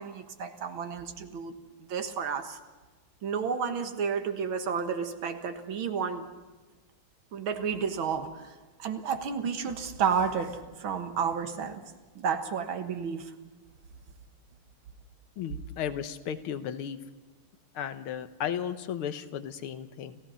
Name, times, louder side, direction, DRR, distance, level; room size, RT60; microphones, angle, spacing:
voice 1, 0.0-1.6 1.9-2.6 3.2-6.3 7.3-8.5 8.8-11.8 12.2-13.3, right 6 dB, 70° right, 8 dB, 2.2 m, -31 dB
voice 2, 15.4-17.0 17.7-20.2, left 9 dB, 90° left, 11 dB, 1.9 m, -35 dB
30.0 x 16.0 x 5.6 m, 1.2 s
omnidirectional pair, 2.3 m